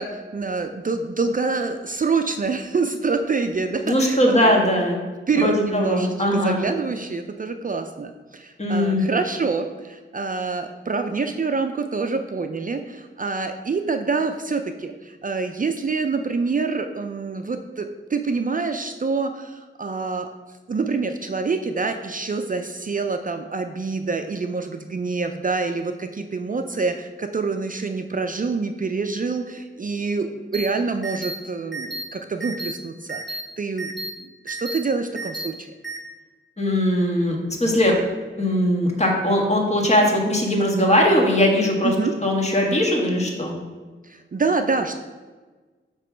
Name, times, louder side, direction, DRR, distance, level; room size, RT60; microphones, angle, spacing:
voice 1, 0.0-4.7 5.3-20.3 20.7-33.9 34.2-35.7 41.8-42.1 44.0-45.0, right 4 dB, 40° right, 6 dB, 0.4 m, -26 dB
voice 2, 3.9-5.0 5.3-6.6 8.6-9.0 36.6-38.0 38.4-41.9 42.2-43.5, left 1 dB, 30° left, 0 dB, 1.4 m, -20 dB
sound 1, 30.5-30.7 31.0-31.4 31.7-32.0 32.4-32.7 33.1-33.4 33.8-34.1 34.5-34.8 35.2-35.5 35.8-36.0, right 2 dB, ahead, 1.2 m, -31 dB
7.6 x 3.0 x 6.0 m, 1.3 s
wide cardioid pair, 80°, 21 cm